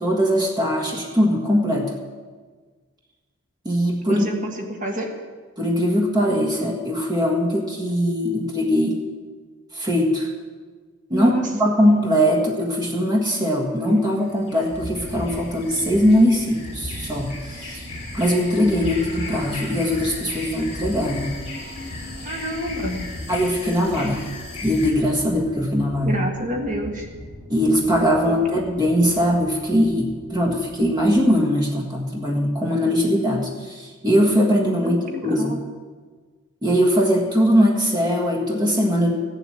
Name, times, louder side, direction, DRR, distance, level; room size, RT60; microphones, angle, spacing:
voice 1, 0.0-1.9 3.6-4.3 5.6-9.0 9.7-10.3 11.1-17.8 18.1-21.3 23.3-24.2 24.6-26.2 27.5-35.5 36.6-39.1, equal, 20° right, -1 dB, 1.6 m, -21 dB
voice 2, 4.1-5.1 11.1-11.5 22.2-23.0 26.0-27.1 28.2-28.3 34.8-35.6, equal, 35° right, 2 dB, 1.6 m, -28 dB
sound 1, 13.9-24.9, left 3 dB, 25° left, 3.8 m, -37 dB
sound 2, 14.7-31.3, left 1 dB, 60° right, 3.6 m, -38 dB
15.5 x 7.5 x 8.6 m, 1.5 s
head